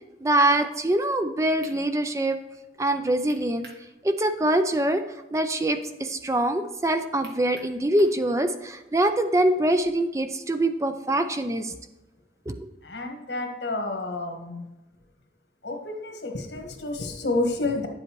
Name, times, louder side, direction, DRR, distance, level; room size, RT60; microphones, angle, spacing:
voice 1, 0.2-2.4 2.8-3.7 4.0-5.0 5.3-11.7 12.5-12.7, right 1 dB, 15° right, 9 dB, 0.4 m, -24 dB
sound 1, 1.6-1.8 3.3-3.9 4.2-4.3 7.2-8.2, right 3 dB, 70° right, 1.6 m, -48 dB
voice 2, 12.8-14.7 15.6-17.9, left 2 dB, 85° left, 3 dB, 1.6 m, -30 dB
10.0 x 7.8 x 3.0 m, 1.1 s
head